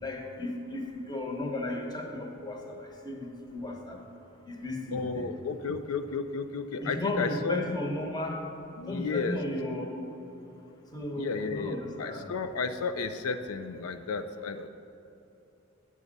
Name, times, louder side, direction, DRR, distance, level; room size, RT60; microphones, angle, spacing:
voice 1, 0.0-4.0 4.5-5.3 6.8-8.4 8.9-9.9 10.9-12.3, left 2 dB, 20° left, 1 dB, 1.0 m, -35 dB
voice 2, 4.9-7.6 8.8-9.4 11.2-14.7, left 4 dB, 90° left, 9 dB, 0.4 m, -33 dB
8.2 x 6.2 x 5.2 m, 3.0 s
head